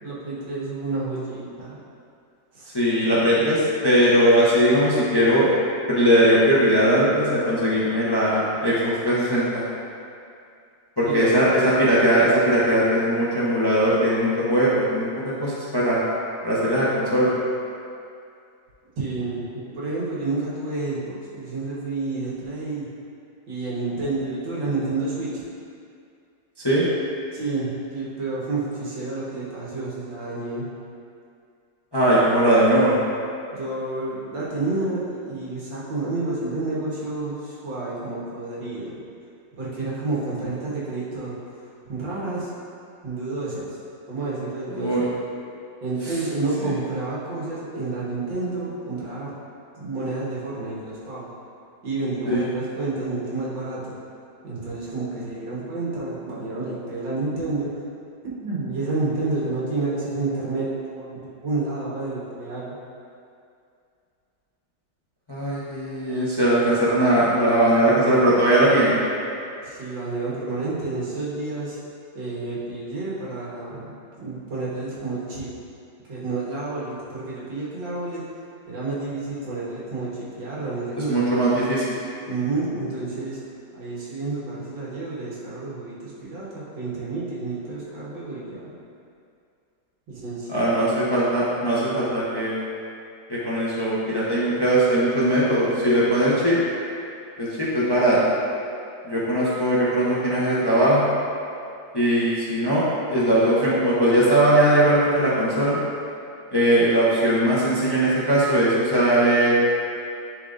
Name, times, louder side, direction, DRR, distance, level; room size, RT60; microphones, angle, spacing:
voice 1, 0.0-1.8 2.5-2.8 11.0-11.4 19.0-22.9 23.5-25.4 27.3-30.7 33.5-39.0 39.6-41.3 41.8-42.5 43.0-43.8 44.1-44.9 45.8-49.3 49.7-51.3 51.8-54.0 54.4-57.7 58.4-60.7 60.9-62.8 66.4-66.7 69.6-71.8 72.1-75.5 76.1-78.2 78.7-81.3 82.3-88.7 90.1-90.9, right 3 dB, 85° right, -7 dB, 2.2 m, -30 dB
voice 2, 2.7-5.5 5.9-9.7 11.0-16.1 16.4-17.3 26.6-26.9 31.9-33.0 44.7-45.1 52.3-52.5 65.3-69.0 81.1-81.9 90.5-92.6 93.3-96.6 97.4-98.2 99.1-101.1 101.9-105.8 106.5-109.5, right 1 dB, 20° left, -8 dB, 0.7 m, -20 dB
11.0 x 4.6 x 2.6 m, 2.4 s
omnidirectional pair, 2.0 m